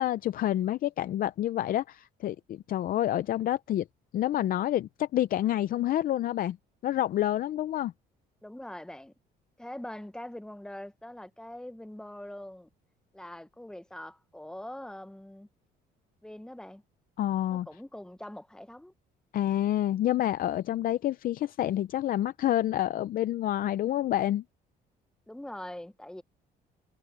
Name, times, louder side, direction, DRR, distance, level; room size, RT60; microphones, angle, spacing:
voice 1, 0.0-3.9 4.1-6.6 6.8-7.9 17.2-17.7 19.3-24.4, left 12 dB, 55° left, 0.6 m, -28 dB
voice 2, 8.4-9.1 9.6-12.7 13.1-15.5 16.2-16.8 17.5-18.9 25.3-26.2, left 1 dB, 5° left, 1.0 m, -43 dB
cardioid pair, 110°, 17 cm